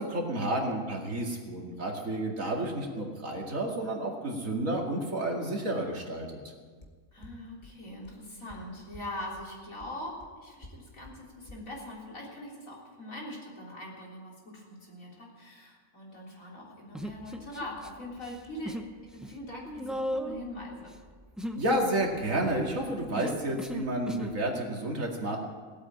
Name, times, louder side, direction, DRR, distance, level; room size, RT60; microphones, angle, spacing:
voice 1, 0.0-6.4 21.6-25.4, right 1 dB, 65° right, 0 dB, 2.7 m, -31 dB
sound 1, 6.8-6.9 7.2-7.3 7.6-7.7 8.0-8.1 8.5-8.6 8.9-9.0 9.4-9.5 9.8-9.9 10.2-10.3 10.6-10.7 11.0-11.1 11.5-11.6, left 2 dB, 30° left, 1.8 m, -48 dB
voice 2, 7.1-18.8 19.1-21.0, left 1 dB, 70° left, -3 dB, 4.0 m, -42 dB
Human voice, 16.9-17.9 18.2-18.9 19.2-24.4, equal, ahead, 0.5 m, -37 dB
17.5 x 8.4 x 8.7 m, 1.5 s
omnidirectional pair, 1.5 m